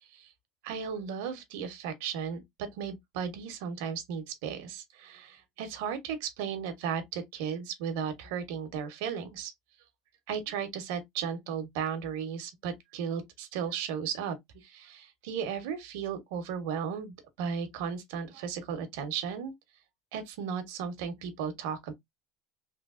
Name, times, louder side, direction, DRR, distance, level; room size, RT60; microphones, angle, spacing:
voice 1, 0.6-9.5 10.3-19.5 20.1-21.9, right 7 dB, 75° right, 1.0 m, -35 dB
3.2 x 2.7 x 2.4 m
cardioid pair, 170°, 0 cm